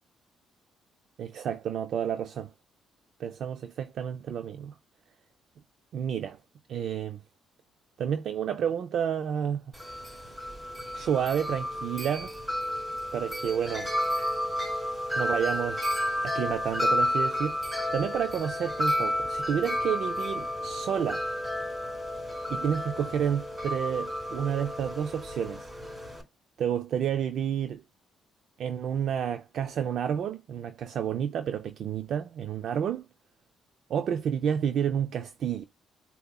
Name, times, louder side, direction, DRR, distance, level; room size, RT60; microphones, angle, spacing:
voice 1, 1.2-2.5 3.2-4.7 5.9-6.4 6.7-7.2 8.0-9.6 10.9-12.3 13.1-13.9 15.2-15.9 16.2-17.6 17.9-21.2 22.5-25.7 26.6-27.8 28.6-33.1 33.9-35.6, right 8 dB, 65° right, 0.4 m, -30 dB
Wind chime, 9.7-26.2, left 1 dB, 20° right, 3.4 m, -31 dB
6.5 x 2.9 x 2.3 m
cardioid pair, 90°, 0 cm